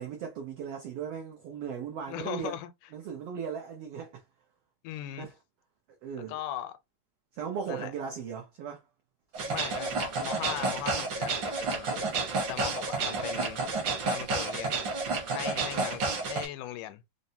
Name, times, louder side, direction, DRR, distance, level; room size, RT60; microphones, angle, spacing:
voice 1, 0.0-2.6 2.9-4.2 5.1-5.3 6.0-6.4 7.3-8.8 12.8-13.2, right 7 dB, 90° right, 1.3 m, -37 dB
voice 2, 2.1-2.7 4.8-5.3 6.3-6.8 7.7-7.9 9.5-12.1 12.5-13.6 14.0-17.0, left 12 dB, 85° left, 2.1 m, -39 dB
sound 1, 9.3-16.5, right 3 dB, 65° right, 1.2 m, -31 dB
5.1 x 2.0 x 2.7 m
omnidirectional pair, 3.7 m